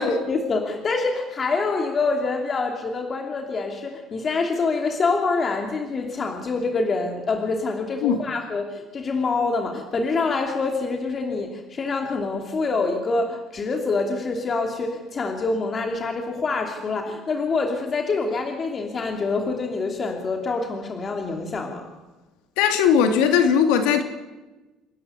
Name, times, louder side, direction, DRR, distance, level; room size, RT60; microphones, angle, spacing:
voice 1, 0.0-21.8, left 3 dB, 35° left, 2 dB, 2.9 m, -26 dB
voice 2, 22.6-24.0, left 7 dB, 80° left, 6 dB, 2.6 m, -18 dB
27.5 x 11.0 x 8.4 m, 1.1 s
supercardioid pair, 85°, 0 cm